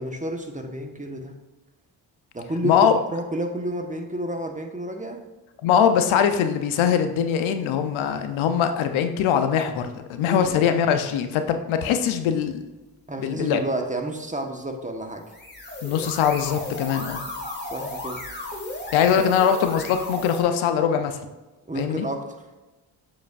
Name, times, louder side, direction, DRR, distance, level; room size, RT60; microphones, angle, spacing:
voice 1, 0.0-1.3 2.3-5.2 10.3-10.6 13.1-15.2 16.9-17.2 17.6-18.2 19.2-19.3 21.7-22.3, right 1 dB, 15° right, 4 dB, 1.2 m, -30 dB
voice 2, 2.6-3.0 5.6-12.6 13.2-13.6 15.8-17.2 18.9-21.2 21.7-22.1, left 8 dB, 90° left, 8 dB, 0.7 m, -22 dB
sound 1, 15.2-20.4, left 2 dB, 20° left, 2.3 m, -35 dB
7.5 x 7.2 x 2.5 m, 1.1 s
supercardioid pair, 55°, 46 cm